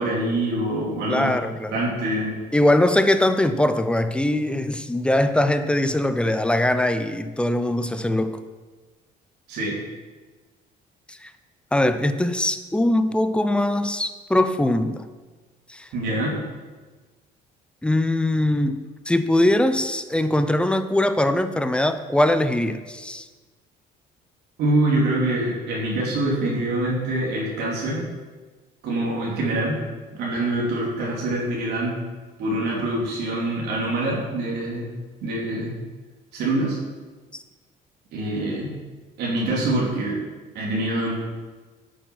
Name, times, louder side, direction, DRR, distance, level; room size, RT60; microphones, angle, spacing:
voice 1, 0.0-1.3 1.7-2.4 9.5-9.8 15.9-16.4 24.6-28.0 28.8-29.8 30.2-31.9 32.4-34.9 35.2-35.7 36.3-36.8 38.1-38.7 39.2-40.2 40.5-41.1, right 1 dB, 80° right, -3 dB, 2.8 m, -25 dB
voice 2, 1.1-1.8 2.5-8.4 11.1-11.3 11.7-15.0 15.7-15.9 17.8-18.8 19.1-23.3, left 1 dB, 5° left, 10 dB, 0.6 m, -21 dB
9.2 x 6.8 x 6.0 m, 1.3 s
cardioid pair, 110°, 17 cm